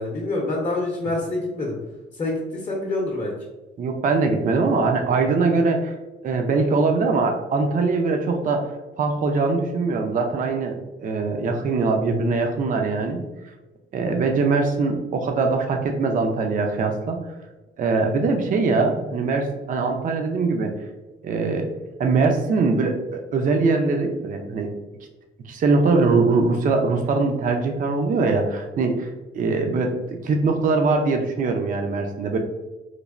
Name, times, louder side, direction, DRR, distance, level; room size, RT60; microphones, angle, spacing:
voice 1, 0.0-1.8 2.2-3.3, left 2 dB, 30° left, -3 dB, 0.6 m, -26 dB
voice 2, 3.8-5.9 6.2-8.7 9.0-13.2 13.9-17.2 17.8-20.7 21.2-21.7 22.0-24.7 25.5-29.1 29.3-32.4, right 3 dB, 40° right, 4 dB, 0.4 m, -22 dB
3.1 x 2.1 x 2.4 m, 1.1 s
cardioid pair, 90°, 20 cm